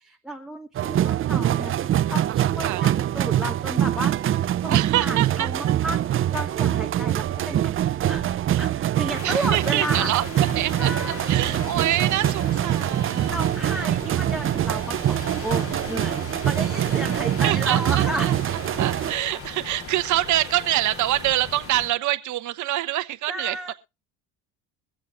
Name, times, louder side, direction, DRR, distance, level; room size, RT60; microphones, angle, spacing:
voice 1, 0.0-1.7 2.1-10.1 10.8-11.5 13.3-18.4 23.3-23.7, right 1 dB, ahead, 1.0 m, -33 dB
sound 1, 0.7-19.1, right 12 dB, 35° right, 0.6 m, -24 dB
voice 2, 1.3-2.1 2.6-2.8 4.7-5.5 8.5-8.6 9.2-10.2 10.5-10.9 11.3-13.4 13.7-14.0 17.4-18.3 18.8-23.7, right 15 dB, 55° right, 1.0 m, -26 dB
sound 2, 9.1-21.9, left 4 dB, 40° left, 4.0 m, -38 dB
23.0 x 7.7 x 2.5 m
supercardioid pair, 95°, 35 cm